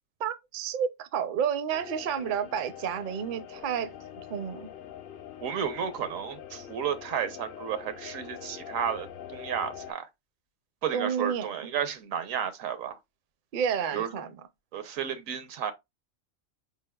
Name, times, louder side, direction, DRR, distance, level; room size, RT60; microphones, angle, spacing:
voice 1, 0.2-3.9 4.3-4.7 10.9-11.5 13.5-14.3, right 7 dB, 55° right, 0.5 m, -30 dB
sound 1, 1.7-9.9, left 9 dB, 55° left, 0.6 m, -44 dB
voice 2, 5.4-10.1 10.8-13.0 13.9-14.1 14.7-15.7, right 8 dB, 85° right, 1.1 m, -32 dB
4.8 x 3.3 x 2.2 m
omnidirectional pair, 1.4 m